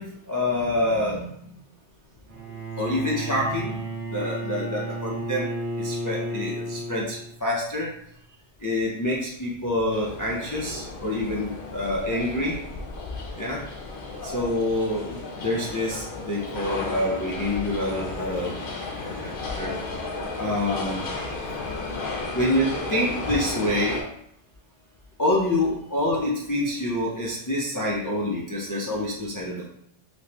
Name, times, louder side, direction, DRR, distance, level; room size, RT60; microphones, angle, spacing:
voice 1, 0.0-1.6 2.8-3.8 4.1-5.5 5.8-7.9 8.6-12.6 13.4-13.6 14.2-18.6 19.1-19.3 19.6-19.8 20.4-21.1 22.3-24.0 25.2-29.7, left 1 dB, 30° left, -5 dB, 0.3 m, -27 dB
Bowed string instrument, 2.3-7.6, right 1 dB, 90° right, 1.1 m, -33 dB
sound 1, 9.9-24.0, left 3 dB, 55° left, 0.8 m, -34 dB
3.5 x 2.9 x 2.9 m, 0.71 s
omnidirectional pair, 1.2 m